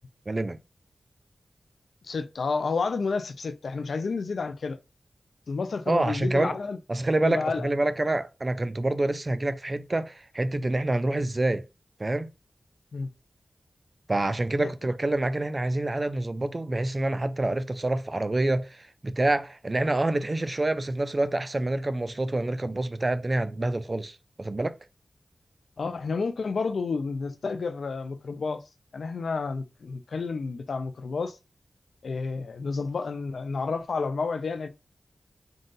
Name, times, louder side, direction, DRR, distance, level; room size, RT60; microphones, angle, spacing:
voice 1, 0.3-0.6 5.9-6.6 6.9-11.7 12.0-12.3 14.1-24.8, right 2 dB, 35° right, 0.5 m, -27 dB
voice 2, 2.0-4.8 5.5-6.8 7.2-7.7 12.9-13.1 14.6-14.7 25.8-28.6 28.9-31.4 32.0-34.7, left 4 dB, 80° left, 0.6 m, -30 dB
3.9 x 2.5 x 3.8 m
cardioid pair, 60°, 0 cm